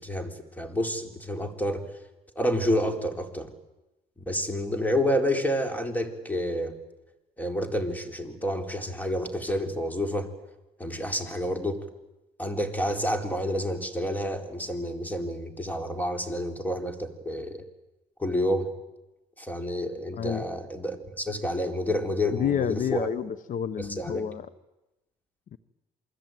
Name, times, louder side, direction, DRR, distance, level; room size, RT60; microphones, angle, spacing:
voice 1, 0.0-1.8 2.4-3.5 4.3-6.7 7.4-10.3 10.8-11.8 12.4-17.6 18.2-18.7 19.4-23.1 23.8-24.2, equal, 10° left, 5 dB, 4.1 m, -29 dB
voice 2, 20.1-20.4 22.3-24.5 25.5-25.6, left 8 dB, 60° left, 15 dB, 1.0 m, -29 dB
28.0 x 20.5 x 9.2 m, 1.0 s
cardioid pair, 90°, 16 cm